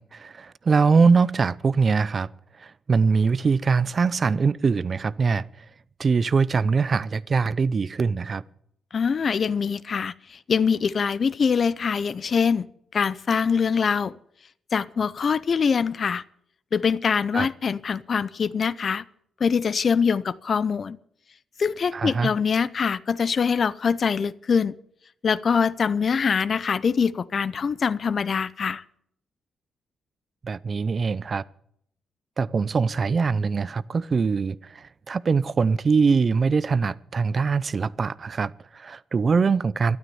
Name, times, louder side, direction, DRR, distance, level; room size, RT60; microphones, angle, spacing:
voice 1, 0.0-2.3 2.6-5.4 6.0-8.4 17.3-17.5 21.9-22.3 30.4-31.4 32.4-40.0, right 5 dB, 35° right, 0.5 m, -22 dB
voice 2, 8.9-10.1 10.5-12.7 12.9-14.2 14.7-16.2 16.7-19.0 19.4-21.0 21.6-24.8 25.2-28.8, left 6 dB, 40° left, 0.5 m, -23 dB
13.0 x 12.0 x 7.0 m
wide cardioid pair, 145°, 0 cm